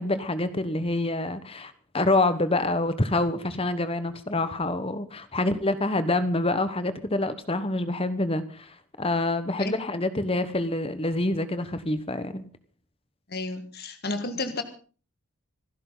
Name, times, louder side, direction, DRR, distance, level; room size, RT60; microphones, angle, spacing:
voice 1, 0.0-12.5, left 2 dB, 25° left, 12 dB, 1.2 m, -26 dB
voice 2, 13.3-14.6, left 2 dB, 45° left, 8 dB, 1.7 m, -32 dB
26.5 x 12.0 x 4.0 m, 0.38 s
head